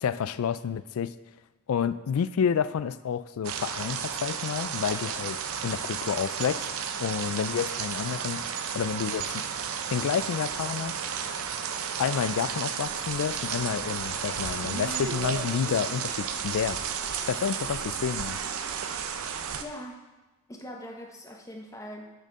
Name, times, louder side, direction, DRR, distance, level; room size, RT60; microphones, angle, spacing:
voice 1, 0.0-1.1 1.7-5.4 5.6-6.7 7.0-8.5 8.7-9.4 9.9-10.9 12.0-16.8 17.3-18.4, left 7 dB, 65° left, 15 dB, 0.3 m, -29 dB
sound 1, 3.4-19.6, right 7 dB, 70° right, 0.6 m, -33 dB
voice 2, 19.6-20.0 20.5-22.1, equal, 15° left, 1 dB, 0.9 m, -41 dB
6.5 x 6.3 x 5.2 m, 1.1 s
head